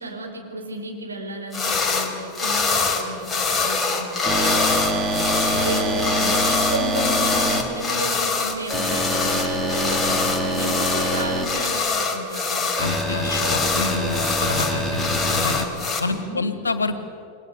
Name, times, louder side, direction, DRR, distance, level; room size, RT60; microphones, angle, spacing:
voice 1, 0.0-5.3 5.6-12.7 16.1-16.5, right 1 dB, 75° right, 1 dB, 5.1 m, -33 dB
sound 1, 1.5-2.1 2.3-16.0, left 4 dB, 10° left, 4.1 m, -24 dB
sound 2, 4.2-7.6 8.7-11.4 12.8-15.6, right 1 dB, 10° right, 3.7 m, -25 dB
voice 2, 12.8-15.7 16.0-17.0, left 3 dB, 75° left, 10 dB, 2.1 m, -28 dB
28.5 x 23.5 x 8.5 m, 2.4 s
figure-of-eight pair, 90°, 0 cm